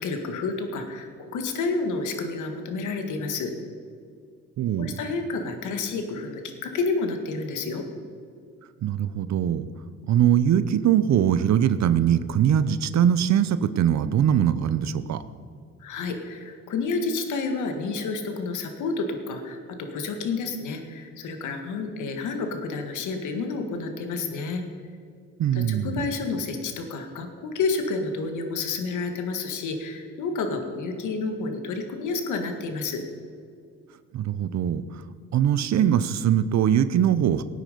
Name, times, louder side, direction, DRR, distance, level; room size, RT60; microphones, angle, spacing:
voice 1, 0.0-3.5 4.8-7.9 15.8-24.6 25.5-33.0, left 4 dB, 80° left, 5 dB, 1.8 m, -30 dB
voice 2, 4.6-4.9 8.8-9.7 10.1-15.2 25.4-26.0 34.1-35.0 35.3-37.4, right 9 dB, 65° right, 13 dB, 0.7 m, -22 dB
18.0 x 9.3 x 5.2 m, 2.3 s
cardioid pair, 90°, 30 cm